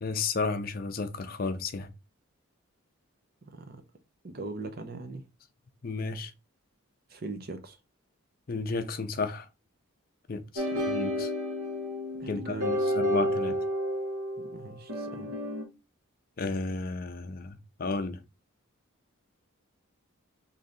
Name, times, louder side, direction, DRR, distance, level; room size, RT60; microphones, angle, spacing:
voice 1, 0.0-1.9 5.8-6.3 8.5-9.5 10.3-11.3 12.3-12.5 12.9-13.6 16.4-18.2, left 3 dB, 40° left, 0.4 m, -32 dB
voice 2, 3.5-3.8 4.2-5.2 7.1-7.8 10.7-10.9 12.2-13.2 14.4-15.4, right 3 dB, 45° right, 0.5 m, -40 dB
sound 1, 10.6-15.6, equal, 90° right, 1.0 m, -31 dB
3.2 x 2.7 x 3.7 m
head